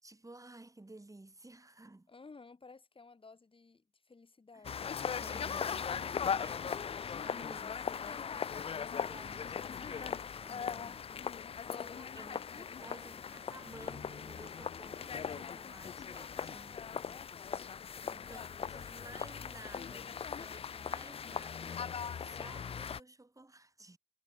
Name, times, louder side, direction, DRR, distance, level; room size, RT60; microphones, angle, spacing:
voice 1, 0.0-2.1 4.5-4.7 5.2-11.1 11.8-17.4 18.0-24.0, right 2 dB, 35° right, 6.1 m, -55 dB
voice 2, 2.1-5.0 11.6-12.2 12.9-13.0 18.2-18.8, left 4 dB, 70° left, 6.9 m, -56 dB
sound 1, 4.6-23.0, left 7 dB, 85° left, 0.4 m, -39 dB
wide cardioid pair, 55°, 10 cm